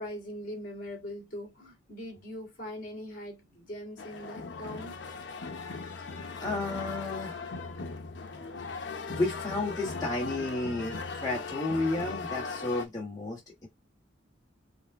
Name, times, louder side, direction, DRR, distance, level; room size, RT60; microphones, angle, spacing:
voice 1, 0.0-5.0, equal, 50° left, 2.4 m, -41 dB
sound 1, 4.0-12.8, left 4 dB, 70° left, 0.7 m, -38 dB
voice 2, 6.4-7.3 9.1-13.7, left 2 dB, 20° left, 1.4 m, -32 dB
5.3 x 2.2 x 3.5 m
head